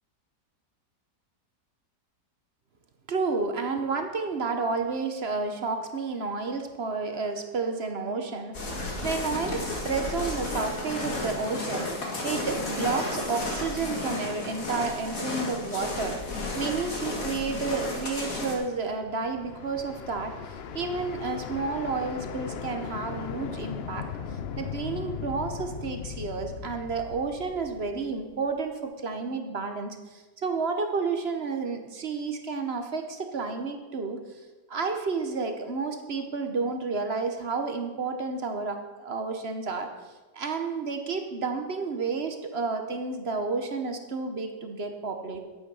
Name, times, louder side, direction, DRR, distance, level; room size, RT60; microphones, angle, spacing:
voice 1, 3.1-16.2 16.5-20.3 20.7-24.1 24.6-34.2 34.7-39.9 40.3-45.4, right 4 dB, 45° right, 6 dB, 1.0 m, -31 dB
sound 1, 8.5-18.5, left 2 dB, 50° left, 2.2 m, -33 dB
sound 2, 18.6-28.6, left 7 dB, 75° left, 0.5 m, -38 dB
11.0 x 8.6 x 5.5 m, 1.2 s
omnidirectional pair, 1.9 m